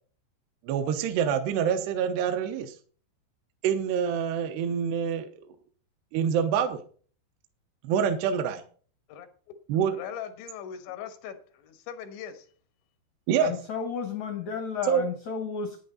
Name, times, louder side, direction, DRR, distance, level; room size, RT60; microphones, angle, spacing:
voice 1, 0.6-2.8 3.6-5.3 6.1-6.8 7.8-8.6 9.7-9.9 13.3-13.5 14.9-15.0, right 7 dB, 75° right, 7 dB, 2.9 m, -26 dB
voice 2, 9.1-9.6 9.9-12.5, left 9 dB, 85° left, 9 dB, 3.6 m, -40 dB
voice 3, 13.4-15.8, left 6 dB, 65° left, 7 dB, 1.8 m, -32 dB
11.5 x 9.7 x 4.0 m, 0.43 s
omnidirectional pair, 5.1 m